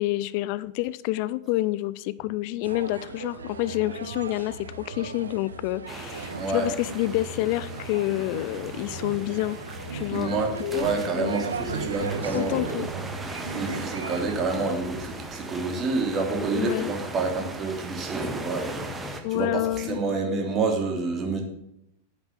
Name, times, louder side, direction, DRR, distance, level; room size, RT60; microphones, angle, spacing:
voice 1, 0.0-9.6 9.9-10.9 11.2-11.4 12.3-12.9 16.5-16.9 19.2-20.0, left 17 dB, 45° left, 18 dB, 0.5 m, -28 dB
sound 1, 2.6-14.5, right 4 dB, 70° right, 1.0 m, -37 dB
sound 2, 5.9-19.2, right 1 dB, 10° right, 1.7 m, -38 dB
voice 2, 6.4-6.7 10.1-12.9 13.4-21.4, right 3 dB, 25° right, 2 dB, 3.1 m, -28 dB
9.9 x 8.8 x 7.6 m, 0.82 s
figure-of-eight pair, 90°, 0 cm